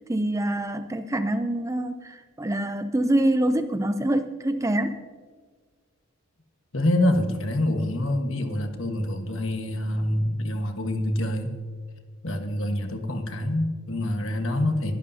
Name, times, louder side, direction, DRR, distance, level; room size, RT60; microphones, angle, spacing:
voice 1, 0.1-5.0, right 1 dB, 15° right, 10 dB, 0.4 m, -25 dB
voice 2, 6.7-11.5 12.2-14.9, left 1 dB, 60° left, 5 dB, 1.3 m, -26 dB
22.0 x 11.5 x 2.7 m, 1.5 s
head